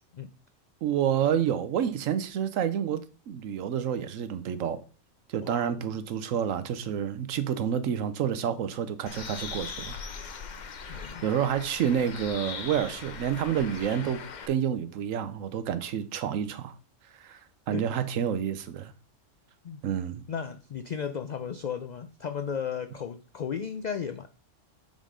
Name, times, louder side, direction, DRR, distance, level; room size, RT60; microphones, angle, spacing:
voice 1, 0.8-4.8 5.3-10.0 10.9-14.2 14.5-16.7 17.2-17.4 17.7-18.9 19.8-20.2, right 9 dB, 90° right, 1.1 m, -29 dB
voice 2, 5.4-6.0 10.9-11.2 17.7-17.9 19.6-19.8 20.3-24.3, left 7 dB, 80° left, 0.4 m, -35 dB
Bird, 9.1-14.5, left 5 dB, 45° left, 0.7 m, -40 dB
7.3 x 3.8 x 4.9 m
omnidirectional pair, 1.3 m